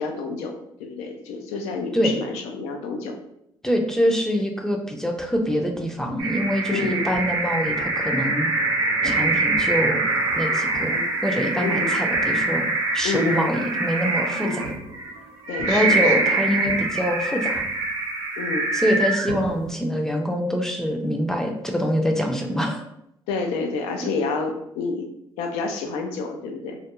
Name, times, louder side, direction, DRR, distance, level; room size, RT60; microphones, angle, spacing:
voice 1, 0.0-3.2 6.7-7.1 10.9-11.1 11.6-12.0 13.0-13.5 14.4-14.6 15.5-16.1 18.4-18.7 23.3-25.1 25.4-26.8, left 4 dB, 90° left, 4 dB, 0.4 m, -29 dB
voice 2, 3.6-8.5 9.0-10.1 10.4-12.7 12.9-14.7 15.7-17.6 18.7-22.8, equal, 5° left, 2 dB, 0.4 m, -25 dB
sound 1, 6.2-19.7, right 2 dB, 80° right, 0.8 m, -24 dB
2.3 x 2.1 x 2.9 m, 0.77 s
supercardioid pair, 65°, 10 cm